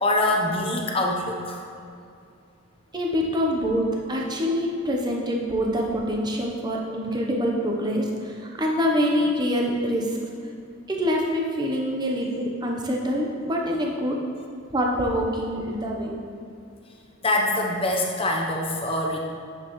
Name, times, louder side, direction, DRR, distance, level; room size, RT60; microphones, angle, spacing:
voice 1, 0.0-1.6 17.2-19.2, left 1 dB, 25° left, 0 dB, 0.8 m, -24 dB
voice 2, 2.9-10.1 10.9-14.2 14.7-16.2, equal, 20° right, -1 dB, 0.8 m, -25 dB
9.7 x 6.3 x 3.1 m, 2.4 s
head